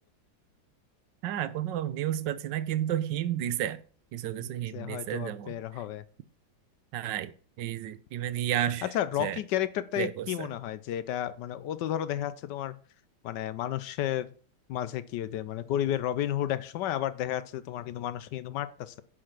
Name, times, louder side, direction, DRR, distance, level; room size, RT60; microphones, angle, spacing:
voice 1, 1.2-3.8 4.1-5.6 6.9-7.3 7.6-8.9 9.2-9.4 10.0-10.5, right 11 dB, 75° right, 1.3 m, -31 dB
voice 2, 4.4-6.0 8.8-12.7 13.2-14.3 14.7-19.0, left 11 dB, 70° left, 1.2 m, -32 dB
10.0 x 5.1 x 5.9 m
omnidirectional pair, 2.1 m